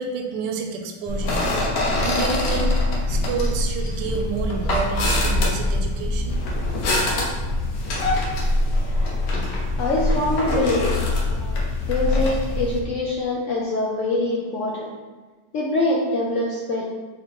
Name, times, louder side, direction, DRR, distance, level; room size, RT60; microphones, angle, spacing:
voice 1, 0.0-1.4 2.0-2.8 3.1-6.4, right 4 dB, 80° right, 3 dB, 1.2 m, -29 dB
sound 1, 1.1-12.8, left 2 dB, 65° left, 1.0 m, -23 dB
voice 2, 9.8-10.9 11.3-11.6 11.9-14.9 15.5-16.8, left 2 dB, 85° left, -4 dB, 0.6 m, -24 dB
3.6 x 3.5 x 2.9 m, 1.3 s
omnidirectional pair, 1.9 m